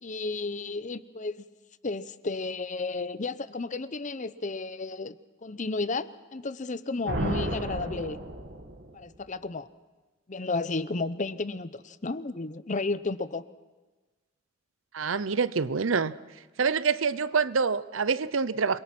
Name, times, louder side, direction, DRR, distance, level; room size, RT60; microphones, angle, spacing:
voice 1, 0.0-1.4 1.8-5.2 5.4-8.2 8.9-9.7 10.3-13.5, left 3 dB, 40° left, 15 dB, 0.8 m, -32 dB
sound 1, 7.1-9.0, right 1 dB, 55° right, 2.3 m, -33 dB
voice 2, 14.9-16.1 16.6-18.8, right 5 dB, 85° right, 17 dB, 0.7 m, -26 dB
28.0 x 22.5 x 6.1 m, 1.2 s
head